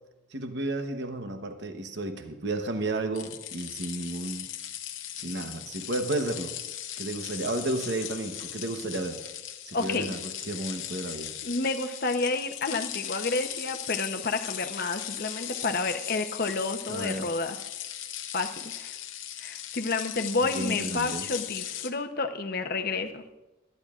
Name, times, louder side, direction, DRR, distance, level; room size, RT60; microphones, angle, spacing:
voice 1, 0.3-4.5 5.2-6.5 7.0-9.2 9.7-11.3 16.9-17.3 20.4-21.2, right 2 dB, 55° right, 6 dB, 1.0 m, -32 dB
sound 1, 3.1-21.9, left 11 dB, 80° left, 0.9 m, -38 dB
voice 2, 9.7-10.1 11.4-17.6 18.3-19.0 19.4-23.2, left 3 dB, 50° left, 6 dB, 0.8 m, -30 dB
23.0 x 10.5 x 2.5 m, 1.0 s
head